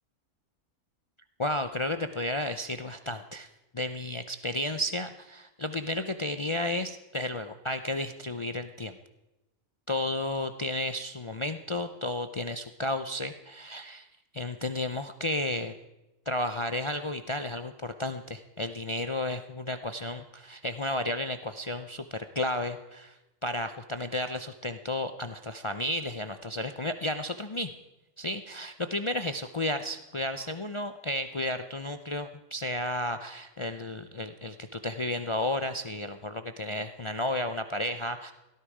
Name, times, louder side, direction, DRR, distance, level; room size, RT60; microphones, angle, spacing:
voice 1, 1.4-3.5 3.7-8.9 9.9-14.1 14.3-15.7 16.3-23.2 23.4-27.7 28.2-38.3, left 1 dB, 50° left, 9 dB, 0.3 m, -32 dB
17.0 x 13.5 x 4.9 m, 1.0 s
omnidirectional pair, 1.4 m